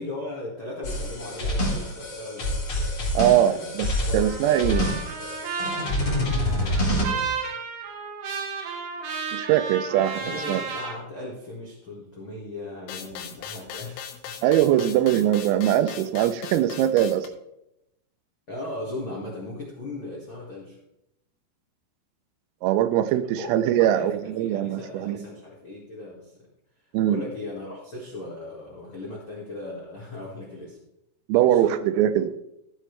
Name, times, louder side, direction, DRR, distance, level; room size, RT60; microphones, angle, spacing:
voice 1, 0.0-2.5 2.9-3.7 4.0-4.3 4.7-4.9 6.2-7.4 10.1-14.4 14.8-14.9 18.5-20.8 23.3-23.5 23.8-26.4 27.0-30.8 31.4-31.7, left 2 dB, 65° left, -5 dB, 1.2 m, -38 dB
sound 1, 0.8-7.0, left 1 dB, 35° left, 3.4 m, -27 dB
voice 2, 3.2-3.9 4.1-4.9 9.3-10.6 14.4-17.3 22.6-25.3 26.9-27.2 31.3-32.3, right 11 dB, 85° right, 12 dB, 3.4 m, -22 dB
Trumpet, 4.2-11.0, right 5 dB, 70° right, 4.2 m, -33 dB
sound 2, 12.9-17.3, left 8 dB, 85° left, 3.7 m, -39 dB
15.0 x 7.5 x 3.3 m, 0.83 s
omnidirectional pair, 6.0 m